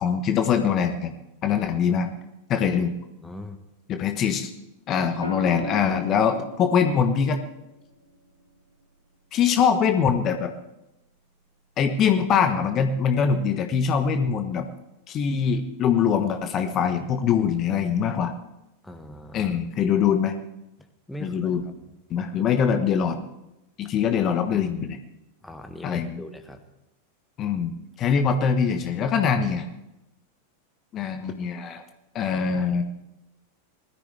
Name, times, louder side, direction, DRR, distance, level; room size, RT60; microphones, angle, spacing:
voice 1, 0.0-1.1 1.4-2.1 2.5-2.9 3.9-4.5 4.9-7.4 9.3-10.5 11.8-14.7 15.1-18.3 19.3-20.3 21.2-21.6 22.1-23.2 23.8-25.0 25.8-26.2 27.4-29.7 30.9-31.8 32.1-32.8, left 7 dB, 30° left, 7 dB, 1.2 m, -23 dB
voice 2, 3.2-3.6 18.8-19.6 21.1-21.7 25.4-26.6, left 1 dB, 5° left, 6 dB, 1.3 m, -40 dB
sound 1, 5.2-9.4 11.1-11.4, left 2 dB, 85° right, 2.3 m, -38 dB
20.5 x 13.5 x 3.3 m, 0.92 s
figure-of-eight pair, 90°, 0 cm